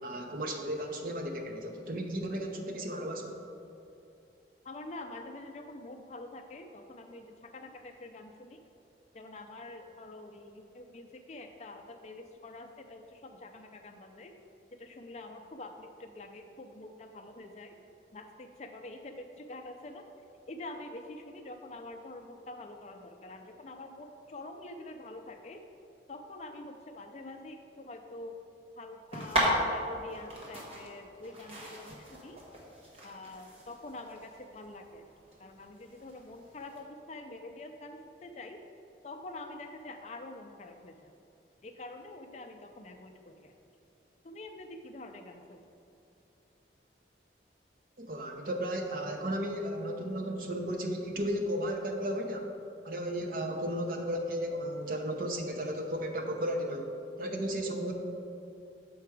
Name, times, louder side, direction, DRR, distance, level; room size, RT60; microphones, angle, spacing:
voice 1, 0.0-3.4 48.0-52.5 52.8-57.9, equal, 50° right, 3 dB, 0.7 m, -34 dB
voice 2, 4.6-8.6 9.1-14.3 14.8-17.8 18.1-20.1 20.5-25.6 26.1-28.4 28.8-32.4 33.0-35.1 35.4-38.6 39.0-41.1 41.6-43.5 44.2-45.6, left 2 dB, 35° left, 5 dB, 0.4 m, -46 dB
sound 1, 29.1-36.8, equal, 35° right, 1.1 m, -36 dB
6.7 x 4.6 x 4.8 m, 2.7 s
head